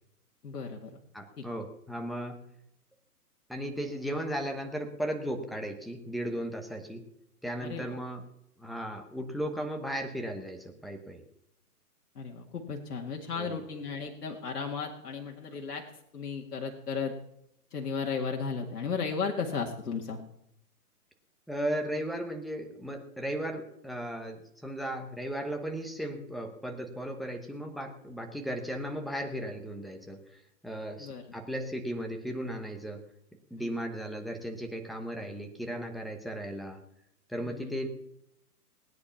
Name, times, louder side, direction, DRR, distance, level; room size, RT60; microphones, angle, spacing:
voice 1, 0.4-1.0 1.4-1.5 7.6-8.0 12.2-15.8 16.1-17.2 17.7-20.2 31.0-31.2 33.6-33.7 37.4-37.8, left 5 dB, 85° left, 1 dB, 2.2 m, -35 dB
voice 2, 1.1-2.4 3.5-7.0 7.4-8.2 8.6-11.2 13.4-13.6 21.5-33.0 33.5-36.8 37.3-37.9, equal, ahead, 3 dB, 1.0 m, -36 dB
18.5 x 9.8 x 5.8 m, 0.78 s
hypercardioid pair, 150°, 46 cm